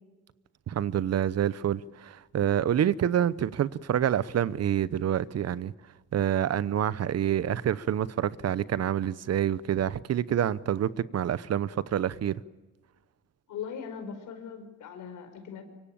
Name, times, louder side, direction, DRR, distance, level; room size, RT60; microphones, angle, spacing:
voice 1, 0.7-5.7 6.1-12.4, right 10 dB, 55° right, 0.9 m, -27 dB
voice 2, 13.5-15.6, left 7 dB, 80° left, 5.2 m, -40 dB
24.5 x 24.0 x 8.8 m
cardioid pair, 90°, 30 cm